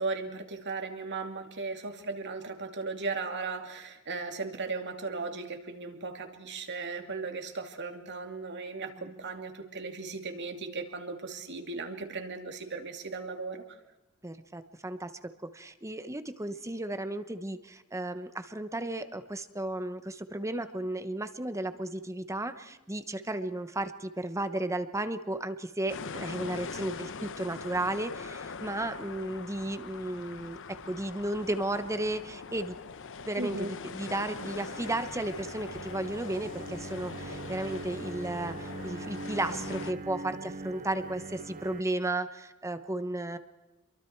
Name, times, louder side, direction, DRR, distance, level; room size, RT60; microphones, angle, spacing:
voice 1, 0.0-13.6 33.4-33.7, right 3 dB, 55° right, 5 dB, 2.6 m, -37 dB
voice 2, 14.2-30.6 30.9-32.7 33.3-43.4, right 1 dB, 15° right, 10 dB, 1.0 m, -34 dB
sound 1, 25.9-39.9, left 5 dB, 60° left, 0.9 m, -42 dB
sound 2, 34.3-41.8, right 3 dB, 40° right, 0.7 m, -42 dB
28.0 x 23.0 x 4.6 m, 1.0 s
head